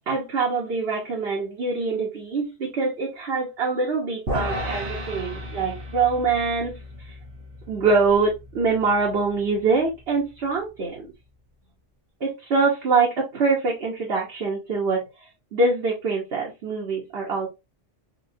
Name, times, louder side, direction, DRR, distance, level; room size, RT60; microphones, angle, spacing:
voice 1, 0.1-6.8 7.0-7.1 7.7-11.1 12.2-15.1 15.5-17.5, right 4 dB, 60° right, 1.2 m, -24 dB
sound 1, 4.3-10.6, equal, 90° right, 1.4 m, -35 dB
4.2 x 2.4 x 2.6 m
omnidirectional pair, 1.2 m